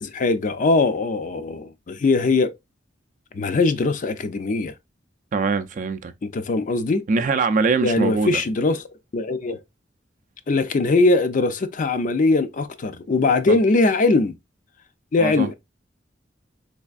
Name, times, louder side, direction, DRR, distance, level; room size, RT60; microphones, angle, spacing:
voice 1, 0.0-2.5 3.3-4.7 6.2-7.0 7.8-8.8 9.1-9.6 10.5-14.3 15.1-15.5, left 3 dB, 45° left, 0.4 m, -21 dB
voice 2, 5.3-6.1 7.1-8.4 13.5-13.6 15.2-15.5, right 4 dB, 45° right, 0.4 m, -22 dB
3.4 x 3.1 x 2.4 m
head